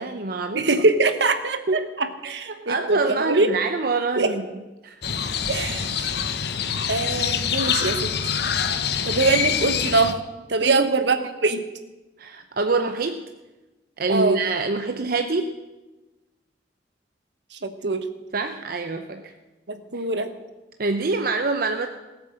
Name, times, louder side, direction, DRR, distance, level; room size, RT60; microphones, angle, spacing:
voice 1, 0.0-0.7 1.7-1.8 2.2-4.5 4.8-5.0 10.6-10.9 12.2-13.2 14.0-15.5 18.3-19.3 20.8-21.9, right 3 dB, 55° right, 6 dB, 0.7 m, -25 dB
voice 2, 0.5-3.5 4.2-4.4 5.5-6.1 6.9-8.3 9.0-10.2 10.5-11.7 14.1-14.4 17.5-18.1 19.7-20.3, right 3 dB, 75° right, 9 dB, 1.2 m, -23 dB
Crow, 5.0-10.1, left 7 dB, 65° left, 0.9 m, -25 dB
18.0 x 8.2 x 7.6 m, 1.1 s
head